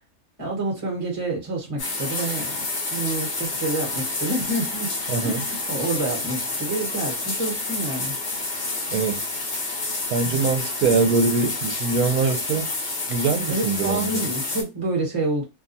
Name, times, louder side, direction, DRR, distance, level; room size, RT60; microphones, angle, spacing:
voice 1, 0.4-4.9 5.2-8.2 10.2-10.4 13.5-15.4, right 2 dB, 25° right, 1.1 m, -28 dB
sound 1, 1.8-14.6, left 3 dB, 40° left, 0.8 m, -29 dB
voice 2, 5.1-5.5 8.9-9.3 10.1-12.7 13.1-14.2, right 4 dB, 80° right, 1.1 m, -23 dB
2.8 x 2.2 x 2.6 m
omnidirectional pair, 1.5 m